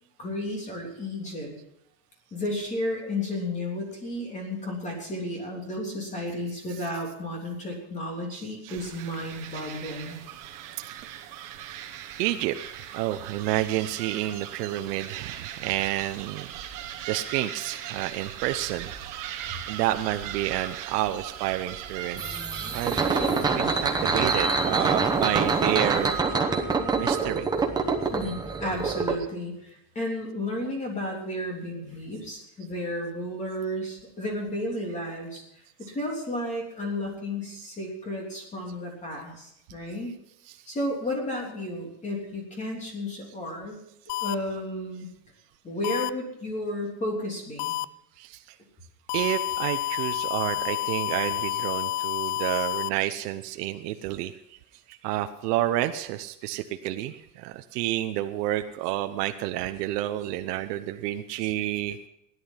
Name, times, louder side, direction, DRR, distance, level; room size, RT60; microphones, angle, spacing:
voice 1, 0.2-1.5 2.3-10.2 28.1-35.4 35.8-40.1 40.7-43.8 44.2-45.1 45.6-47.8, left 1 dB, 15° left, 0 dB, 3.3 m, -33 dB
voice 2, 8.3-8.7 10.9-11.0 11.7-11.8 12.2-16.5 17.1-18.9 19.7-22.4 22.7-26.2 27.0-27.5 40.4-40.6 48.2-48.6 49.1-54.6 54.9-62.0, right 14 dB, 85° right, 8 dB, 0.9 m, -30 dB
sound 1, 8.7-26.2, right 10 dB, 45° right, 1.5 m, -40 dB
sound 2, 22.2-29.2, right 4 dB, 10° right, 0.9 m, -25 dB
sound 3, 44.1-44.3 45.8-46.1 47.6-47.8 49.1-52.9, left 15 dB, 85° left, 0.7 m, -29 dB
16.5 x 11.0 x 5.7 m, 0.79 s
cardioid pair, 175°, 46 cm